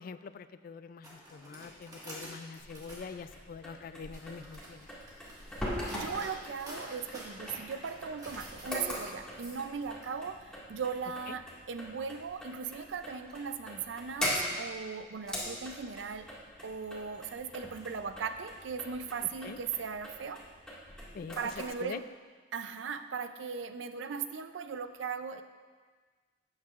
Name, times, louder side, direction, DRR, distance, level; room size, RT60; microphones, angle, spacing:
voice 1, 0.0-4.9 11.3-11.4 19.4-19.6 21.1-21.4 21.8-22.0, left 5 dB, 50° left, 13 dB, 0.3 m, -44 dB
sound 1, 1.0-3.1 3.9-10.0, equal, 20° right, 1.7 m, -49 dB
sound 2, 2.6-21.7, equal, 5° left, 1.9 m, -42 dB
voice 2, 5.9-16.3 16.6-20.4 21.4-22.0 22.5-25.4, right 6 dB, 80° right, 10 dB, 0.5 m, -38 dB
12.0 x 8.6 x 2.5 m, 1.5 s
head